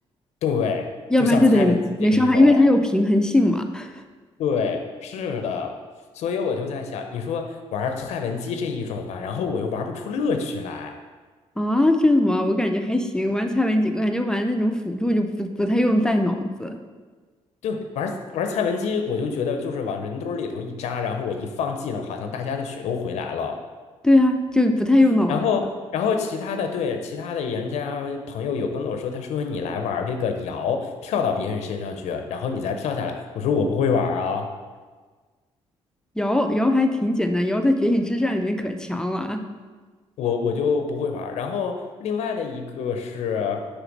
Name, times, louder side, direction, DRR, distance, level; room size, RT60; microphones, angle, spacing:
voice 1, 0.4-0.9 1.2-1.8 2.1-2.6 4.4-5.8 6.1-10.9 17.6-23.6 25.3-34.5 40.2-43.7, left 5 dB, 80° left, 5 dB, 0.5 m, -27 dB
voice 2, 1.1-3.9 11.6-16.8 24.0-25.4 36.2-39.4, left 1 dB, 5° left, 6 dB, 0.4 m, -20 dB
6.0 x 3.3 x 5.2 m, 1.4 s
cardioid pair, 90°, 11 cm